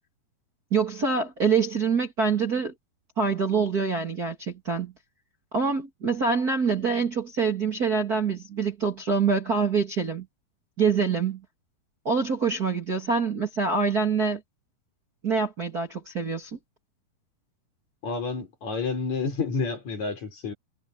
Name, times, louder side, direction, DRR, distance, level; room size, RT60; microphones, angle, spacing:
voice 1, 0.7-2.7 3.2-4.9 5.5-10.3 10.8-11.4 12.0-14.4 15.2-16.6, right 5 dB, 30° right, 2.3 m, -25 dB
voice 2, 18.0-20.5, left 4 dB, 50° left, 5.0 m, -29 dB
omnidirectional pair, 4.5 m